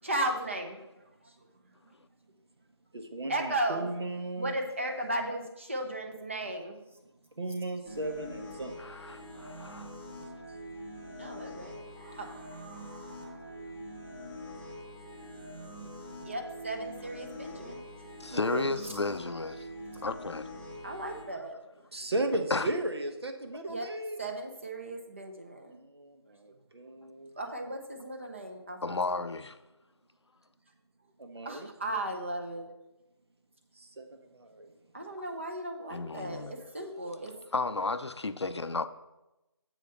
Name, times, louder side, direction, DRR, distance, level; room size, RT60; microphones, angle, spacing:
voice 1, 0.0-1.5 3.3-3.9 4.4-6.8 11.2-13.5 15.8-15.9 16.2-17.8 20.8-21.6 23.7-23.9 24.2-25.8 27.4-29.2 31.4-32.7 34.9-37.3, right 1 dB, 25° right, 0.9 m, -36 dB
voice 2, 2.9-4.5 7.4-8.7 18.3-18.6 21.9-24.2 25.9-26.2 26.4-27.3 31.2-31.7 34.0-34.1 34.3-34.7, right 1 dB, 60° right, 1.3 m, -35 dB
sound 1, 7.8-21.2, equal, ahead, 0.7 m, -44 dB
voice 3, 8.8-10.0 18.2-19.7 20.0-20.5 22.5-22.7 28.8-29.6 35.9-36.6 37.5-38.9, left 3 dB, 70° left, 0.6 m, -33 dB
7.8 x 5.0 x 6.7 m
figure-of-eight pair, 175°, 15 cm